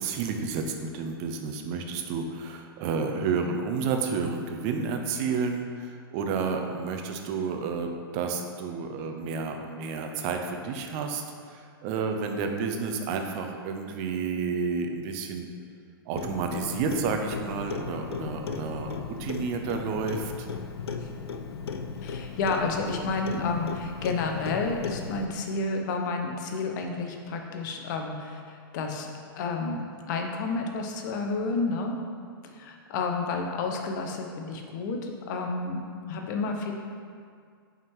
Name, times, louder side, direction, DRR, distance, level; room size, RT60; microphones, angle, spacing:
voice 1, 0.0-15.5 16.1-20.5, right 5 dB, 40° right, 4 dB, 0.6 m, -31 dB
Clock, 16.2-25.2, left 5 dB, 85° left, 0.4 m, -36 dB
voice 2, 22.0-29.1 29.3-31.9 32.4-35.8 36.1-36.7, left 3 dB, 50° left, 3 dB, 0.8 m, -30 dB
5.8 x 3.6 x 4.6 m, 2.2 s
hypercardioid pair, 130°, 13 cm